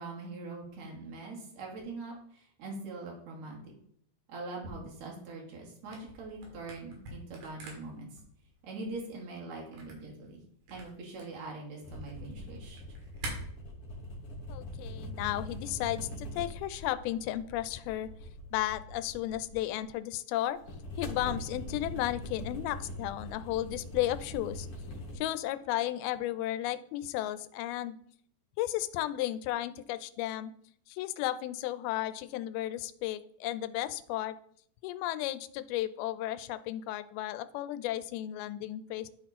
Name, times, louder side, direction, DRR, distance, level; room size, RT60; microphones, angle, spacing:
voice 1, 0.0-3.7 4.3-8.1 8.6-10.4 10.7-12.8, right 3 dB, 50° right, -1 dB, 3.0 m, -42 dB
Camera, 5.8-13.3, right 2 dB, 70° right, 3.8 m, -47 dB
sound 1, 11.8-19.9 20.6-25.2, left 1 dB, 45° left, 2.3 m, -42 dB
voice 2, 14.5-18.1 18.5-20.6 21.0-24.7 25.2-28.0 28.6-30.5 30.9-34.4 34.8-39.1, left 14 dB, 90° left, 14 dB, 2.5 m, -34 dB
11.5 x 4.3 x 4.1 m, 0.64 s
omnidirectional pair, 4.3 m